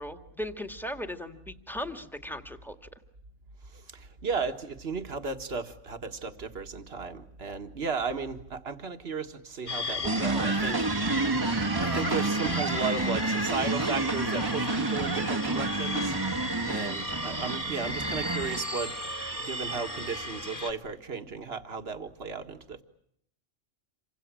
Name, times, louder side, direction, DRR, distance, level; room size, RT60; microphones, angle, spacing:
voice 1, 0.0-2.8, left 1 dB, ahead, 6 dB, 1.9 m, -37 dB
voice 2, 3.7-10.9 11.8-16.2 16.6-19.0 19.4-22.8, right 5 dB, 50° right, 7 dB, 1.9 m, -35 dB
sound 1, 9.7-20.7, equal, 35° left, 2.7 m, -35 dB
sound 2, 10.0-18.6, right 2 dB, 20° right, 1.4 m, -29 dB
28.0 x 25.0 x 7.5 m, 0.71 s
omnidirectional pair, 1.3 m